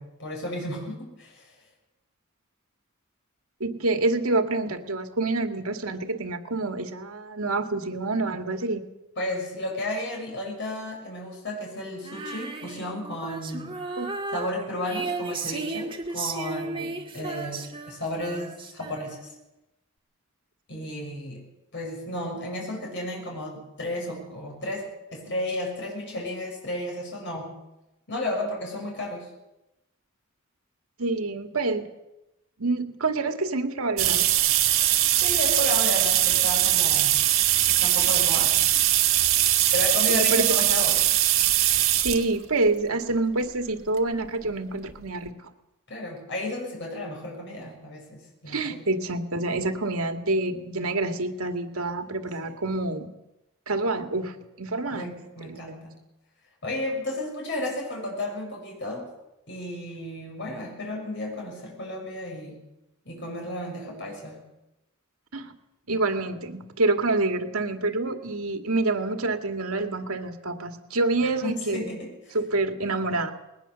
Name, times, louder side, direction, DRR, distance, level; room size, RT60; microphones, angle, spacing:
voice 1, 0.0-1.6 9.2-13.7 14.3-19.3 20.7-21.5 21.7-27.6 28.1-29.3 35.2-37.2 37.7-38.6 39.7-41.1 45.9-48.9 52.5-52.6 54.9-55.9 56.6-59.1 59.5-62.6 63.0-64.5 71.4-72.4, left 1 dB, 55° left, -1 dB, 6.3 m, -33 dB
voice 2, 3.6-8.8 14.0-14.1 16.8-16.9 17.2-17.3 20.7-20.8 31.0-31.9 32.6-34.3 40.1-40.7 42.0-45.3 48.5-53.1 53.7-55.7 65.3-65.5 65.9-71.9 72.3-73.3, right 2 dB, 90° right, 6 dB, 2.1 m, -27 dB
Female singing, 12.0-19.4, right 3 dB, 25° right, 2.2 m, -35 dB
sound 1, 34.0-42.2 43.1-43.2 44.5-44.6 44.9-45.0 45.3-45.4, right 13 dB, 65° right, 1.8 m, -21 dB
20.5 x 19.0 x 7.0 m, 0.95 s
head